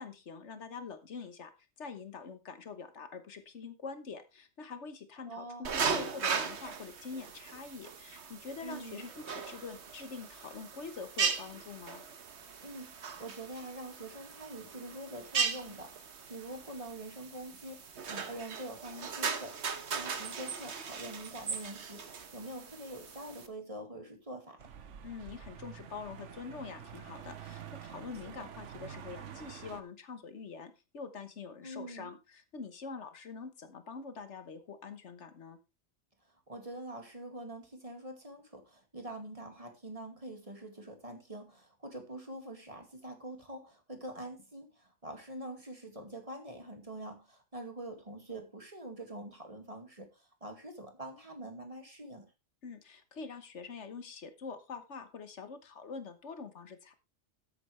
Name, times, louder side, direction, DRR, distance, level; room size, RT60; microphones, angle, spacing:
voice 1, 0.0-1.5 1.8-12.0 25.0-35.6 52.6-56.9, left 5 dB, 75° left, 1.5 m, -45 dB
voice 2, 5.3-5.9 8.6-9.0 12.6-24.7 28.4-28.5 31.6-32.1 36.5-52.3, right 1 dB, 30° right, 2.3 m, -45 dB
sound 1, 5.6-23.5, right 6 dB, 70° right, 1.4 m, -38 dB
sound 2, 24.6-29.8, right 8 dB, 90° right, 1.3 m, -47 dB
13.5 x 8.6 x 3.3 m
omnidirectional pair, 1.2 m